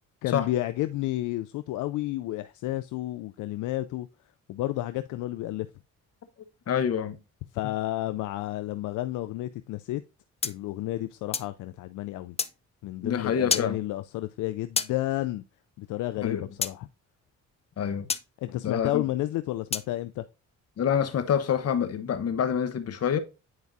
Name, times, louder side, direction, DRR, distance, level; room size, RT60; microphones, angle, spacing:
voice 1, 0.2-4.1 4.5-5.7 7.5-10.0 10.4-12.4 12.8-15.4 15.8-16.9 18.4-20.2, left 15 dB, 80° left, 0.5 m, -31 dB
voice 2, 6.7-7.2 13.0-13.8 16.2-16.4 17.8-18.1 18.6-19.0 20.8-23.2, left 8 dB, 55° left, 1.0 m, -26 dB
sound 1, 10.4-11.5 12.4-12.5 13.5-13.7 14.8-14.9 16.6-16.7 18.1-18.2 19.7-19.9, left 5 dB, 20° left, 0.4 m, -29 dB
9.5 x 4.6 x 2.6 m
cardioid pair, 90°, 30 cm